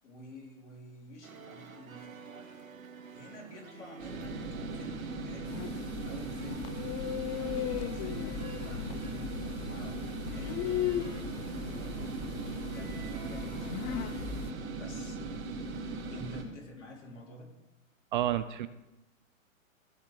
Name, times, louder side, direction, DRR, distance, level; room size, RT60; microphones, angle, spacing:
voice 1, 0.0-2.2 3.1-5.6 6.0-6.8 7.5-10.8 12.5-14.2 14.8-15.2 16.1-17.5, left 1 dB, 60° left, -1 dB, 4.4 m, -49 dB
sound 1, 1.2-14.5, right 5 dB, 85° right, 1.4 m, -51 dB
sound 2, 4.0-16.4, right 3 dB, 55° right, 3.1 m, -39 dB
sound 3, 5.5-14.5, left 10 dB, 25° left, 0.7 m, -38 dB
voice 2, 18.1-18.7, right 12 dB, 40° right, 13 dB, 0.5 m, -29 dB
15.5 x 5.8 x 6.6 m, 1.0 s
hypercardioid pair, 120°, 40 cm